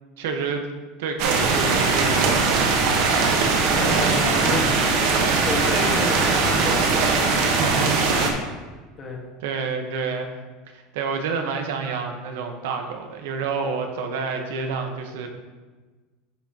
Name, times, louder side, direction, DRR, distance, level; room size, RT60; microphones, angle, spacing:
voice 1, 0.2-0.7 1.0-3.8 7.4-8.3 9.4-10.3 10.7-15.3, right 5 dB, 85° right, 4 dB, 1.1 m, -29 dB
sound 1, 1.2-8.3, right 4 dB, 55° right, 1.2 m, -20 dB
voice 2, 3.7-8.4 9.0-9.2, left 3 dB, 20° left, -1 dB, 1.4 m, -31 dB
9.9 x 6.0 x 2.9 m, 1.3 s
supercardioid pair, 175°, 0 cm